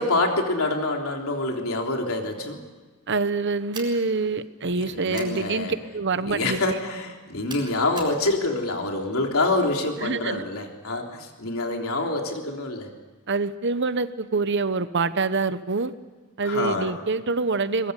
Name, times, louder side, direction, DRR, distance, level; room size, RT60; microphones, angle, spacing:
voice 1, 0.0-2.6 4.7-5.8 6.2-12.9 16.4-17.0, left 2 dB, 70° left, 2 dB, 3.5 m, -26 dB
voice 2, 3.1-6.7 10.0-10.4 13.3-15.9 16.4-17.9, right 3 dB, 50° right, 13 dB, 1.0 m, -26 dB
sound 1, 3.7-4.0 5.1-5.4 7.5-8.2, right 3 dB, 20° right, 4.5 m, -39 dB
22.5 x 21.5 x 8.2 m, 1.3 s
head